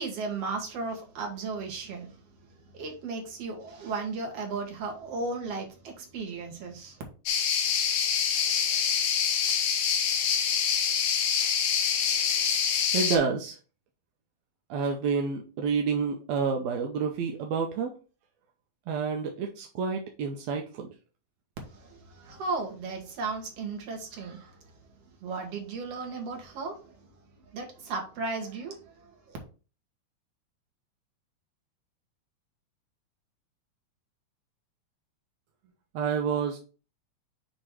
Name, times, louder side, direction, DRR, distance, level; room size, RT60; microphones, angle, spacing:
voice 1, 0.0-2.2 2.7-7.0 21.6-24.6 25.2-27.1 27.5-29.4, right 4 dB, 55° right, 2.3 m, -35 dB
sound 1, 7.3-13.2, left 7 dB, 75° left, 2.4 m, -26 dB
voice 2, 12.9-13.6 14.7-17.9 18.9-20.9 35.9-36.6, right 5 dB, 75° right, 1.7 m, -29 dB
7.8 x 3.1 x 4.7 m
omnidirectional pair, 3.8 m